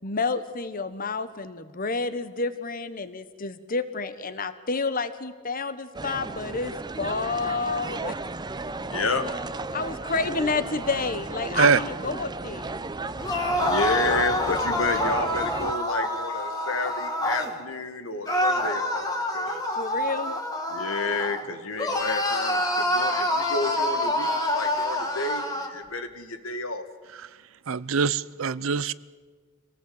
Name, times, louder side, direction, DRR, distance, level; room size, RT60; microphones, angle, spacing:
voice 1, 0.0-8.2 9.7-12.8 19.8-20.3, left 4 dB, 45° left, 12 dB, 1.3 m, -29 dB
sound 1, 5.9-15.8, right 3 dB, 20° right, 0.7 m, -35 dB
voice 2, 8.8-9.2 13.5-19.8 20.7-26.8, left 3 dB, 80° left, 8 dB, 2.1 m, -31 dB
sound 2, 13.2-17.5 18.3-21.4 21.8-25.7, left 1 dB, 20° left, 2.4 m, -27 dB
voice 3, 27.7-28.9, right 5 dB, 75° right, 19 dB, 0.6 m, -23 dB
26.5 x 18.0 x 8.0 m, 1.5 s
head